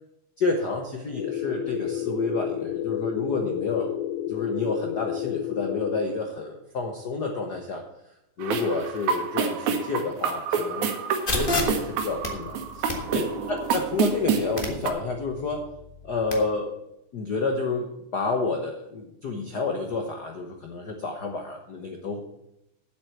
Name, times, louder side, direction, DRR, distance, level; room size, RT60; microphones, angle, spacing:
voice 1, 0.4-3.9 4.3-7.8 8.4-10.9 11.3-15.6 16.0-16.8 17.1-22.2, left 3 dB, 65° left, 3 dB, 1.0 m, -29 dB
sound 1, 1.1-6.1, left 11 dB, 85° left, 2.0 m, -31 dB
sound 2, 8.4-14.9, right 6 dB, 85° right, 2.6 m, -28 dB
sound 3, 11.3-16.3, left 2 dB, 30° left, 1.1 m, -33 dB
8.1 x 7.7 x 7.8 m, 0.86 s
omnidirectional pair, 3.3 m